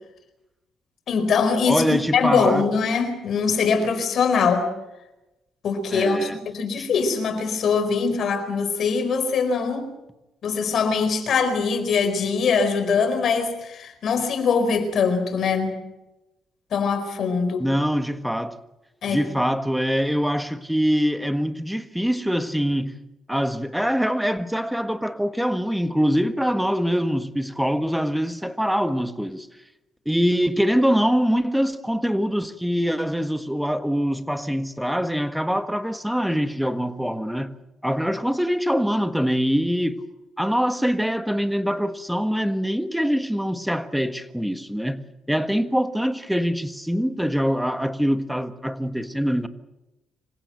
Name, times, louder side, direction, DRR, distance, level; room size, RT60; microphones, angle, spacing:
voice 1, 1.1-4.6 5.6-9.9 10.4-15.8 16.7-17.7 19.0-19.2, left 5 dB, 65° left, 4.5 m, -22 dB
voice 2, 1.7-2.7 5.9-6.4 17.6-18.5 19.1-22.9 23.3-29.5 30.0-37.5 37.8-40.0 40.4-45.0 45.3-49.5, equal, ahead, 1.5 m, -24 dB
26.0 x 16.0 x 7.9 m
cardioid pair, 90°, 0 cm